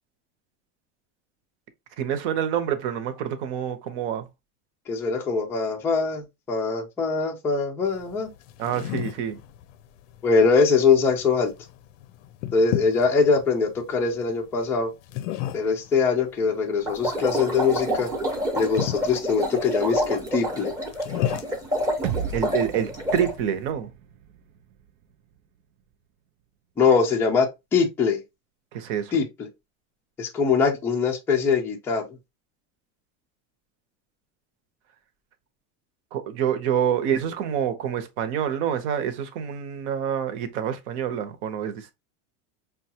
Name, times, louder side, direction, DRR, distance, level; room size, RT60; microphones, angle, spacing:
voice 1, 2.0-4.3 8.6-9.4 22.3-23.9 28.7-29.2 36.1-41.9, right 9 dB, 65° right, 0.9 m, -27 dB
voice 2, 4.9-8.3 10.2-11.5 12.5-14.9 15.5-18.1 18.6-20.7 26.8-28.2 29.1-29.2 30.2-32.2, left 5 dB, 5° left, 0.3 m, -22 dB
sound 1, 7.8-23.7, left 13 dB, 80° left, 0.6 m, -36 dB
sound 2, 16.9-23.3, equal, 10° right, 0.7 m, -28 dB
sound 3, 22.0-26.0, right 8 dB, 80° right, 0.6 m, -36 dB
5.6 x 2.3 x 2.8 m
cardioid pair, 165°, 38 cm